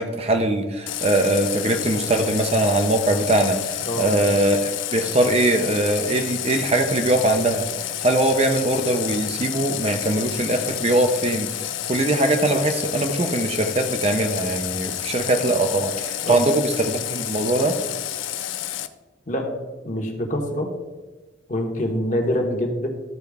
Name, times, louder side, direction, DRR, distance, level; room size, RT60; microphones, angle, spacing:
voice 1, 0.0-7.7 8.0-17.8, right 1 dB, 30° right, 5 dB, 0.6 m, -21 dB
Water tap faucet, 0.9-18.9, left 11 dB, 75° left, 0.4 m, -30 dB
voice 2, 19.3-19.6 19.8-20.7 21.5-22.9, left 1 dB, 40° left, 2 dB, 1.2 m, -25 dB
13.5 x 4.5 x 3.5 m, 1.2 s
head